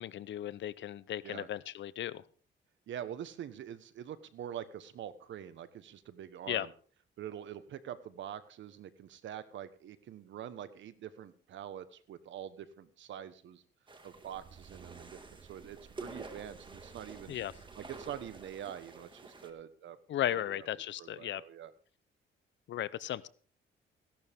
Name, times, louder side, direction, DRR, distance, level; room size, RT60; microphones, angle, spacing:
voice 1, 0.0-2.2 6.5-6.7 17.3-17.5 20.1-21.4 22.7-23.3, left 12 dB, 65° left, 0.7 m, -36 dB
voice 2, 2.9-6.7 7.2-13.6 14.0-17.4 17.8-20.0 20.3-20.7 21.0-21.7, right 10 dB, 70° right, 1.3 m, -45 dB
sound 1, 13.9-19.5, right 3 dB, 25° right, 2.0 m, -50 dB
sound 2, 14.1-19.0, right 6 dB, 40° right, 0.8 m, -57 dB
16.5 x 11.5 x 3.6 m
cardioid pair, 90°, 20 cm